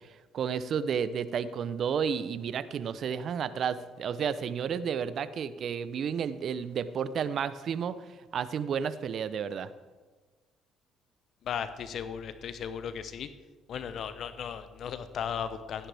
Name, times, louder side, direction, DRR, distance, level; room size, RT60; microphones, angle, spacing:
voice 1, 0.3-8.0 8.3-9.7, right 7 dB, 60° right, 15 dB, 0.6 m, -31 dB
voice 2, 11.4-13.3 13.7-15.9, left 7 dB, 60° left, 12 dB, 0.7 m, -36 dB
15.0 x 10.0 x 3.5 m, 1.3 s
supercardioid pair, 65°, 0 cm